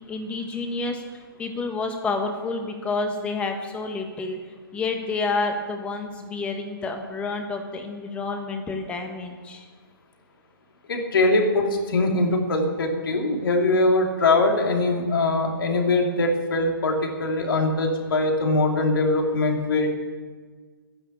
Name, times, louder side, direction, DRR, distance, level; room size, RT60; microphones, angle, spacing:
voice 1, 0.1-4.4 4.7-9.6, left 3 dB, 10° left, 4 dB, 1.4 m, -29 dB
voice 2, 10.9-19.9, left 2 dB, 70° left, 2 dB, 3.2 m, -22 dB
11.5 x 10.5 x 8.2 m, 1.5 s
hypercardioid pair, 160°, 12 cm